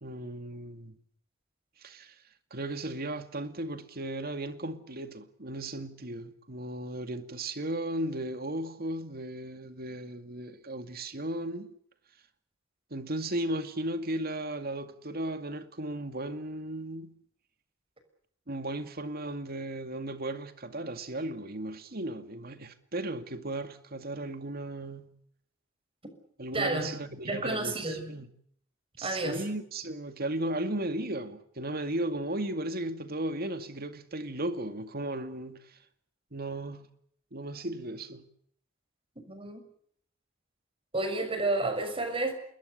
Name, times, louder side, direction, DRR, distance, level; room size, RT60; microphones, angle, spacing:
voice 1, 0.0-1.0 1.8-2.2 2.5-11.7 12.9-17.2 18.5-25.1 26.4-28.3 29.0-35.8 36.3-36.8 37.3-38.2, right 1 dB, 50° right, 2.3 m, -35 dB
voice 2, 26.5-26.9 27.3-28.1 29.0-29.4 39.2-39.6 40.9-42.3, right 2 dB, 30° right, 6.4 m, -30 dB
28.5 x 21.5 x 6.7 m
head